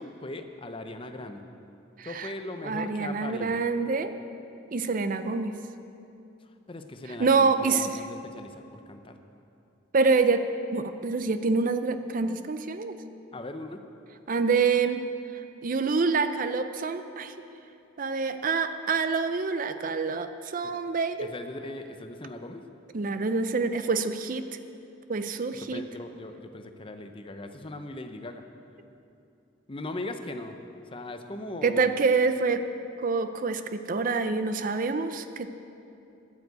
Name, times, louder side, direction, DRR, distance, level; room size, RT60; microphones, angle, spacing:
voice 1, 0.0-1.4 2.0-3.6 6.7-9.1 13.3-13.8 20.6-20.7 21.2-22.6 25.6-28.4 29.7-30.6 30.9-31.9, left 2 dB, 25° left, 7 dB, 0.6 m, -39 dB
voice 2, 2.0-2.3 2.6-4.1 4.7-5.6 7.2-8.0 9.9-10.4 10.7-12.9 14.3-15.0 15.6-17.3 18.0-21.3 22.9-24.5 25.1-25.8 31.6-32.6 33.0-35.5, right 4 dB, 45° right, 10 dB, 0.5 m, -26 dB
10.5 x 9.3 x 8.0 m, 2.7 s
head